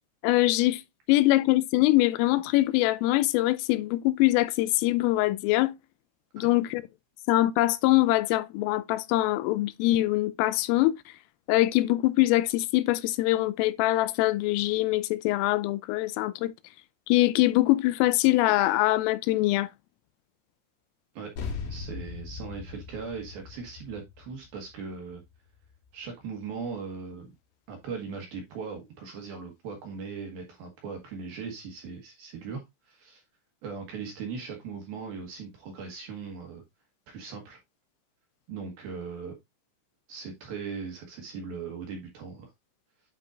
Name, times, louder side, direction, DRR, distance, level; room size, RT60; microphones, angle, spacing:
voice 1, 0.2-0.8 1.1-5.7 6.3-6.8 7.3-11.0 11.5-16.5 17.1-19.7, left 17 dB, 90° left, 3.2 m, -23 dB
sound 1, 21.4-26.1, left 5 dB, 65° left, 3.4 m, -40 dB
voice 2, 21.7-25.2 25.9-27.3 27.7-33.2 33.6-36.6 37.1-37.6 38.5-39.4 40.1-42.5, right 5 dB, 65° right, 2.6 m, -39 dB
9.1 x 5.4 x 2.5 m
omnidirectional pair, 5.8 m